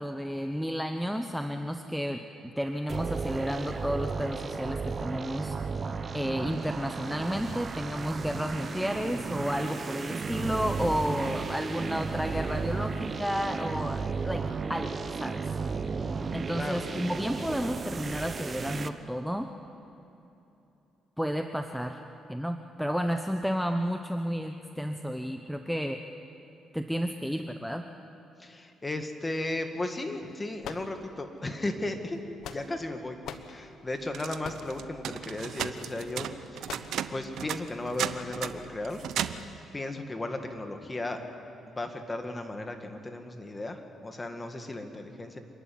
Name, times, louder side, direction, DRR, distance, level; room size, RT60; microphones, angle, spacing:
voice 1, 0.0-5.6 6.1-15.4 16.3-19.5 21.2-22.0 22.3-26.0 26.7-27.9, equal, ahead, 6 dB, 0.9 m, -32 dB
sound 1, 2.9-18.9, right 4 dB, 40° right, 1.0 m, -34 dB
voice 2, 16.6-16.9 28.4-32.2 32.5-33.2 33.5-36.8 37.1-39.1 39.7-41.2 41.7-45.4, left 2 dB, 20° left, 5 dB, 2.1 m, -35 dB
sound 2, 30.6-31.4 32.1-32.9 33.2-33.5 34.4-34.8 35.6-35.8 36.7-37.0, left 8 dB, 75° left, 1.2 m, -41 dB
sound 3, 34.1-39.6, right 10 dB, 75° right, 0.8 m, -35 dB
26.5 x 11.5 x 9.5 m, 2.9 s
cardioid pair, 90°, 0 cm